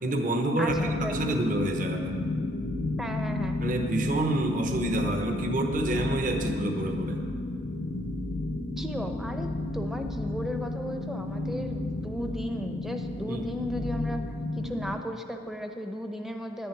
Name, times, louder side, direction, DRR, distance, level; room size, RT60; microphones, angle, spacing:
voice 1, 0.0-2.1 3.6-7.2 13.3-13.4, right 1 dB, 40° right, 3 dB, 1.0 m, -28 dB
voice 2, 0.6-1.4 3.0-3.6 8.8-14.2 14.6-16.7, equal, ahead, 4 dB, 0.7 m, -35 dB
sound 1, 0.7-15.0, left 2 dB, 60° left, 0.7 m, -32 dB
11.0 x 7.0 x 9.0 m, 2.1 s
head